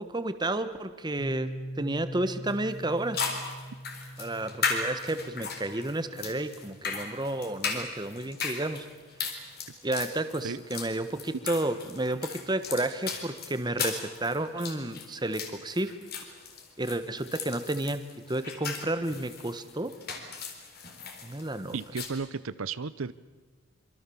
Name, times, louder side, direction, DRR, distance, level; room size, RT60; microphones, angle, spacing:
voice 1, 0.0-3.2 4.2-8.9 9.8-16.0 16.8-18.0 18.3-19.9 21.2-21.8, right 1 dB, 20° right, 11 dB, 1.3 m, -31 dB
Piano, 1.2-8.6, equal, 80° left, 6.0 m, -44 dB
sound 1, 2.5-2.6 3.1-22.1, left 5 dB, 50° left, 4.0 m, -36 dB
voice 2, 21.7-23.1, right 5 dB, 80° right, 16 dB, 0.7 m, -34 dB
25.5 x 25.5 x 7.2 m, 1.4 s
head